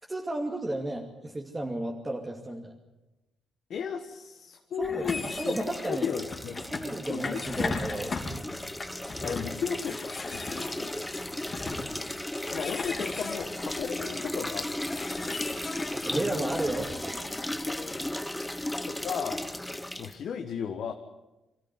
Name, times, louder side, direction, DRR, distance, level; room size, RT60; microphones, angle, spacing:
voice 1, 0.1-2.8 4.8-5.1 5.3-6.1 6.7-8.2 15.9-17.4 18.4-18.6, right 1 dB, 15° right, 0 dB, 2.5 m, -33 dB
voice 2, 3.7-6.6 7.1-7.4 9.2-11.4 12.5-14.8 15.1-15.4 15.7-16.0 17.6-18.2 18.9-19.4 20.0-20.9, left 7 dB, 65° left, 5 dB, 1.5 m, -35 dB
sound 1, 4.8-17.5, left 3 dB, 35° left, 3.8 m, -38 dB
sound 2, 5.0-20.2, left 1 dB, 10° left, 0.9 m, -36 dB
24.5 x 14.0 x 9.7 m, 1.1 s
cardioid pair, 90°, 0 cm